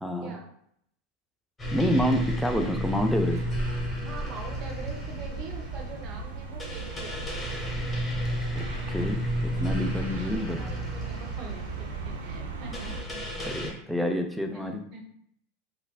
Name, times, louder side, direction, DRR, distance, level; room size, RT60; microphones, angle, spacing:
voice 1, 0.0-0.3 1.7-3.4 8.5-10.6 13.4-14.8, equal, ahead, 4 dB, 0.4 m, -28 dB
sound 1, 1.6-13.7, equal, 15° left, 1.0 m, -32 dB
sound 2, 3.3-13.0, right 4 dB, 80° right, 0.4 m, -38 dB
voice 2, 4.0-7.2 10.5-13.7 14.0-14.2 14.5-15.0, right 4 dB, 50° right, 1 dB, 0.8 m, -44 dB
3.2 x 2.4 x 2.2 m, 0.70 s
hypercardioid pair, 95°, 0 cm